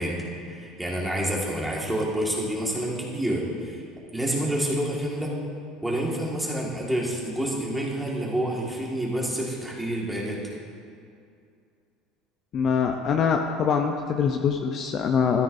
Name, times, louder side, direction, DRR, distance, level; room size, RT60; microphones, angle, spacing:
voice 1, 0.0-3.8 4.1-5.3 5.8-10.4, right 1 dB, 5° right, -4 dB, 1.7 m, -28 dB
voice 2, 12.5-15.4, left 6 dB, 40° left, 4 dB, 0.6 m, -24 dB
13.5 x 13.0 x 2.6 m, 2.5 s
cardioid pair, 140°, 0 cm